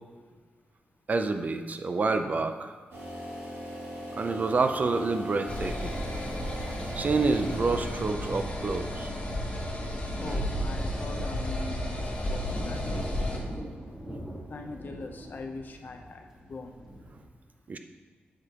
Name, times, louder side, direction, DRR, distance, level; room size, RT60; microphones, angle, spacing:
voice 1, 0.2-0.5 9.4-13.9 14.5-17.0 17.4-17.5, left 3 dB, 55° left, 4 dB, 0.7 m, -44 dB
voice 2, 1.1-2.8 4.2-6.0 6.9-9.1 10.2-10.3 17.7-17.8, right 3 dB, 45° right, 7 dB, 0.5 m, -28 dB
sound 1, 2.9-8.1, equal, 85° right, 1.9 m, -40 dB
sound 2, 5.5-13.4, left 1 dB, 30° left, 1.0 m, -33 dB
Thunder, 5.6-17.2, equal, 5° right, 1.3 m, -43 dB
8.0 x 5.0 x 2.9 m, 1.5 s
cardioid pair, 90°, 4 cm